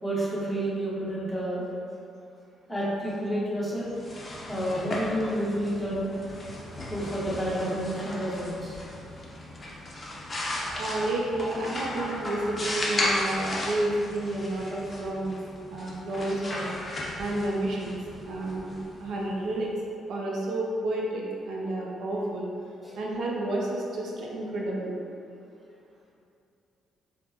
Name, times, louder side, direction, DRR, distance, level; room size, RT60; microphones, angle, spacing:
voice 1, 0.0-1.6 2.7-3.9 4.5-6.1 6.9-8.8 22.8-23.0, right 1 dB, 10° left, -8 dB, 1.1 m, -30 dB
sound 1, 3.8-19.5, left 1 dB, 30° left, 0.7 m, -35 dB
voice 2, 10.8-15.4 15.7-16.7 17.2-18.7 19.0-19.7 20.1-22.5 23.0-24.9, right 1 dB, 70° right, -3 dB, 0.5 m, -30 dB
4.3 x 2.1 x 2.8 m, 2.6 s
cardioid pair, 90°, 0 cm